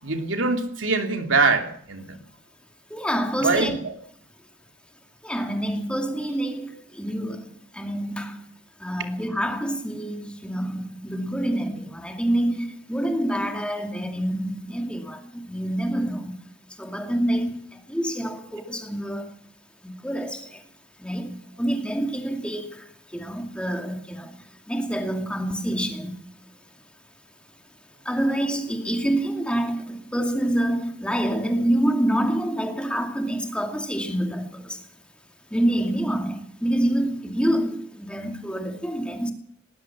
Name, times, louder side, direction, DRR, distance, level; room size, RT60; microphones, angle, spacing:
voice 1, 0.0-2.2 3.4-3.9, right 3 dB, 80° right, 2.9 m, -23 dB
voice 2, 2.9-3.8 5.2-8.5 8.8-16.4 16.8-19.3 19.8-20.6 21.0-26.4 28.0-34.8 35.5-39.3, right 1 dB, 5° left, 2.5 m, -27 dB
19.5 x 19.0 x 7.4 m
head